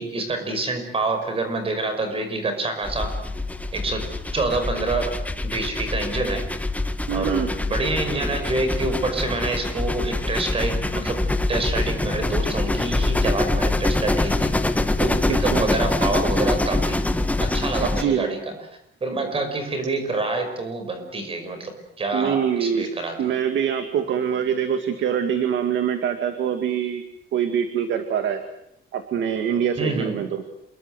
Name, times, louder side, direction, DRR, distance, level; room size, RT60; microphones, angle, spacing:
voice 1, 0.0-3.1 3.7-6.5 7.1-11.2 11.5-14.5 15.0-17.0 17.4-18.5 19.0-23.4 29.8-30.3, right 3 dB, 25° right, 7 dB, 5.5 m, -27 dB
sound 1, 2.8-18.0, left 2 dB, 5° left, 1.2 m, -24 dB
voice 2, 7.1-7.5 15.2-15.7 17.8-18.3 22.1-22.9 23.2-27.0 27.3-28.4 28.9-30.4, right 8 dB, 60° right, 8 dB, 2.2 m, -24 dB
28.0 x 22.5 x 8.0 m, 0.77 s
cardioid pair, 180°, 21 cm